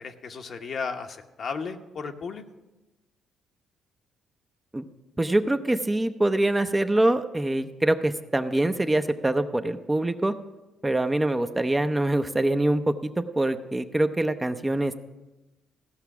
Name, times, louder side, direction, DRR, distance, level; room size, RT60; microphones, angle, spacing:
voice 1, 0.0-2.4, left 5 dB, 55° left, 6 dB, 0.9 m, -34 dB
voice 2, 5.2-10.3 10.8-14.9, right 1 dB, 15° right, 8 dB, 0.6 m, -24 dB
16.0 x 5.8 x 5.9 m, 1.1 s
cardioid pair, 90°, 0 cm